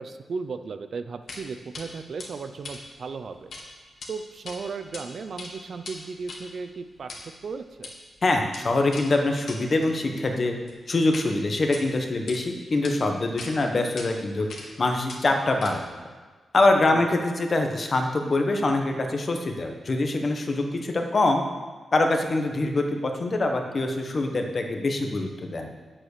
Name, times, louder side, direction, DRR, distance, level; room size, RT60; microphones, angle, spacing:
voice 1, 0.0-3.5 4.1-7.9 16.9-17.2, right 4 dB, 55° right, 9 dB, 0.6 m, -36 dB
sound 1, 1.3-1.4 1.7-1.9 2.2-3.6 3.9-4.1 4.4-5.0 5.3-11.3 11.6-12.4 12.8-12.9 13.4-13.5 14.0-14.1 14.5-14.8 15.1-16.0, left 3 dB, 65° left, 1.8 m, -41 dB
voice 2, 8.2-10.5 10.9-15.8 16.5-21.4 21.9-25.7, left 2 dB, 40° left, 3 dB, 1.2 m, -24 dB
9.2 x 7.6 x 6.7 m, 1.4 s
wide cardioid pair, 120°, 0 cm